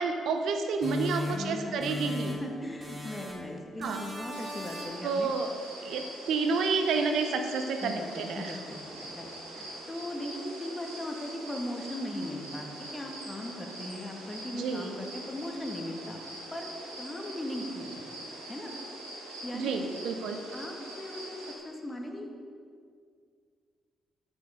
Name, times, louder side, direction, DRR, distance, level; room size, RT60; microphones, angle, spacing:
voice 1, 0.0-2.3 3.8-4.1 5.0-5.5 5.8-8.6 14.5-14.9 19.5-20.4, right 4 dB, 65° right, 6 dB, 0.7 m, -30 dB
sound 1, 0.8-2.5 2.8-3.5 3.8-5.1, left 2 dB, 30° right, 3.1 m, -37 dB
voice 2, 1.3-1.7 2.0-5.3 5.8-6.0 7.8-16.2 16.5-16.7 17.0-18.0 18.5-18.7 19.4-20.0 20.5-22.3, left 1 dB, 20° left, 1 dB, 2.0 m, -39 dB
sound 2, 4.3-21.5, right 1 dB, 85° right, 1.7 m, -43 dB
13.0 x 6.3 x 5.2 m, 2.1 s
hypercardioid pair, 40°, 0 cm